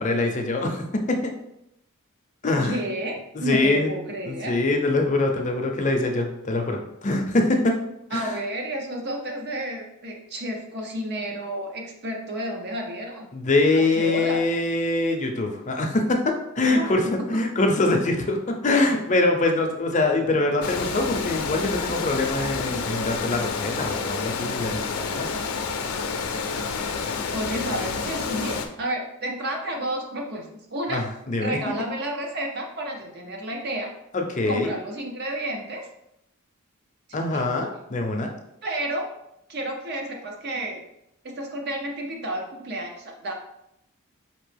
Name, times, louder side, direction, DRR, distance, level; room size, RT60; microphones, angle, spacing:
voice 1, 0.0-1.3 2.4-2.8 3.3-3.9 4.3-7.8 8.1-8.3 13.3-25.3 30.9-31.6 34.1-34.7 37.1-38.3, left 2 dB, 35° left, 3 dB, 0.6 m, -24 dB
voice 2, 2.6-4.6 8.1-13.3 13.7-14.4 16.7-17.1 27.3-30.5 30.7-31.0 31.4-33.9 34.5-35.9 37.1-37.5 38.6-39.1 39.5-40.8 41.2-43.3, right 1 dB, 50° right, 1 dB, 0.7 m, -31 dB
Water, 20.6-28.7, left 5 dB, 85° left, 0.5 m, -29 dB
5.1 x 2.8 x 3.3 m, 0.81 s
head